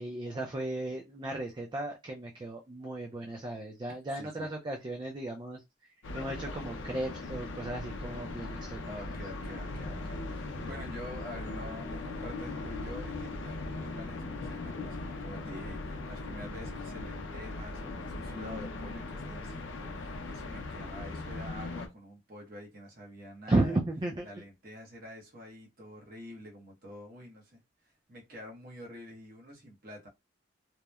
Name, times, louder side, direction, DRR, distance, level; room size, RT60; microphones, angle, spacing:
voice 1, 0.0-5.6 6.1-8.8 23.5-24.3, right 2 dB, 25° right, 0.3 m, -34 dB
voice 2, 3.9-4.5 8.8-23.8 24.2-30.1, left 1 dB, 50° right, 0.9 m, -47 dB
sound 1, 6.0-21.9, left 2 dB, 80° left, 0.5 m, -39 dB
2.8 x 2.0 x 2.2 m
head